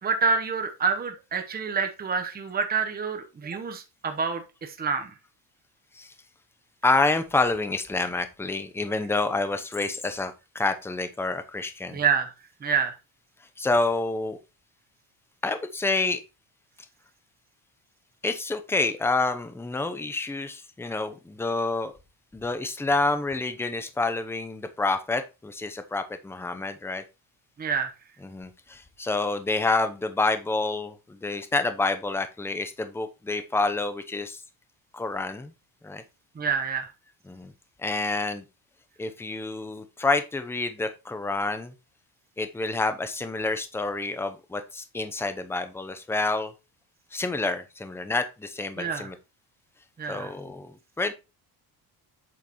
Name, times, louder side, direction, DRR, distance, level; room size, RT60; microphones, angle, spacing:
voice 1, 0.0-5.1 11.9-12.3 12.6-13.0 27.6-27.9 36.3-36.9 48.8-49.1 50.0-50.3, right 5 dB, 25° right, 6 dB, 1.0 m, -27 dB
voice 2, 6.8-12.0 13.6-14.4 15.4-16.2 18.2-21.9 22.3-27.0 28.2-34.4 34.9-35.5 35.8-36.0 37.3-37.5 37.8-38.4 39.0-41.7 42.4-46.5 47.1-49.1 50.1-51.1, left 3 dB, 5° left, 9 dB, 0.7 m, -28 dB
8.5 x 6.5 x 3.0 m, 0.27 s
cardioid pair, 140°, 40 cm